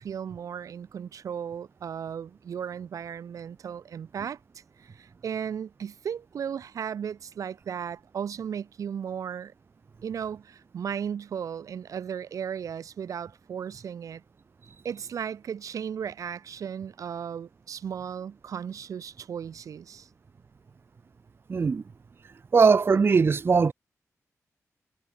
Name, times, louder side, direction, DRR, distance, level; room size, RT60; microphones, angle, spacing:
voice 1, 0.0-4.4 4.8-9.5 10.0-14.2 14.8-20.1 22.6-22.7, right 8 dB, 80° right, 1.3 m, -35 dB
voice 2, 21.5-21.8 22.5-23.7, right 5 dB, 45° right, 1.0 m, -20 dB
wide cardioid pair, 115°, 6 cm